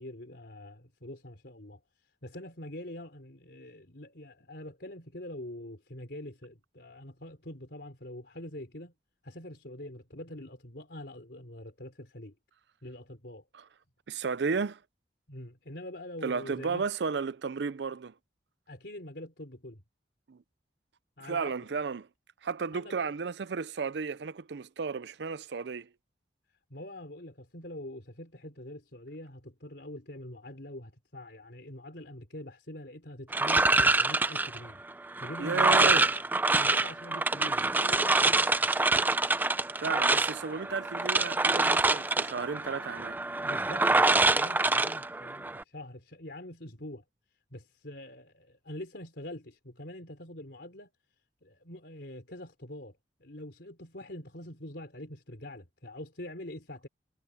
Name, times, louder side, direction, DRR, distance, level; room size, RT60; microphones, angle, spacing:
voice 1, 0.0-1.8 2.2-8.9 9.2-12.3 12.8-13.4 15.3-16.9 18.7-19.8 21.2-21.8 22.7-23.1 26.7-34.8 35.2-36.1 36.5-38.8 43.4-47.0 47.5-50.9 51.4-56.9, left 1 dB, 65° left, 3.9 m, -44 dB
voice 2, 14.1-14.8 16.2-18.1 20.3-20.4 21.2-22.1 22.4-25.9 35.4-36.1 39.8-43.2, right 5 dB, 70° right, 0.5 m, -33 dB
sound 1, 33.3-45.6, right 3 dB, 10° right, 0.4 m, -26 dB
head